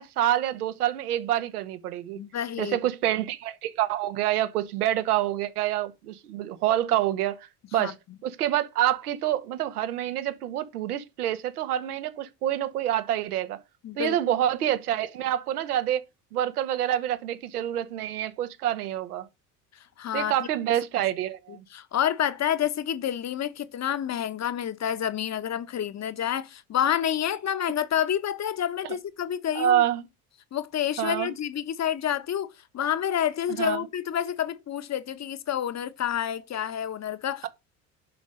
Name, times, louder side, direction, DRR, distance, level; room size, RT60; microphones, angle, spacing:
voice 1, 0.0-2.2 2.6-7.9 8.2-13.6 14.0-16.0 16.3-19.3 20.1-21.6 28.8-29.0 29.5-30.0 31.0-31.3 33.6-33.8, right 12 dB, 75° right, 1.6 m, -27 dB
voice 2, 2.1-2.8 7.8-7.9 13.8-14.2 20.0-20.5 21.7-29.8 30.5-37.5, left 10 dB, 35° left, 1.3 m, -29 dB
11.0 x 5.3 x 6.4 m
hypercardioid pair, 70°, 45 cm